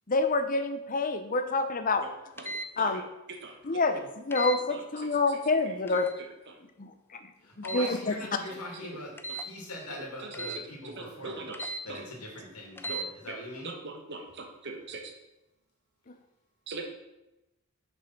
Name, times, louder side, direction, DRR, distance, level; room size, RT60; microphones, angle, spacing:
voice 1, 0.1-2.0 2.8-3.0 3.6-6.1 6.8-7.2 7.7-8.1, left 3 dB, 35° left, 8 dB, 0.7 m, -27 dB
sound 1, 2.4-2.7 4.3-4.6 5.9-6.2 7.6-8.0 9.2-9.5 10.3-10.6 11.5-11.8 12.8-13.1, right 2 dB, 10° left, 0.4 m, -36 dB
voice 2, 7.4-11.5 11.8-13.7, left 1 dB, 85° left, -1 dB, 2.9 m, -42 dB
voice 3, 11.0-12.0 12.9-13.0 13.8-15.0 16.7-16.9, right 3 dB, 50° right, 3 dB, 1.2 m, -40 dB
6.3 x 6.3 x 5.9 m, 0.94 s
head